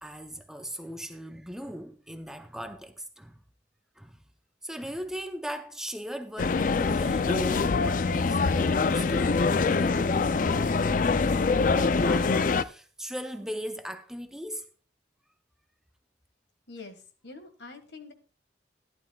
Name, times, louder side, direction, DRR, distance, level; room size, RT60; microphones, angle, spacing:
voice 1, 0.0-3.4 4.0-4.2 4.6-9.5 9.8-11.1 11.7-14.6, equal, 5° right, 0.6 m, -38 dB
sound 1, 6.4-12.6, left 4 dB, 45° left, 0.4 m, -24 dB
voice 2, 16.7-18.1, left 3 dB, 70° left, 1.7 m, -45 dB
14.5 x 11.5 x 2.3 m
head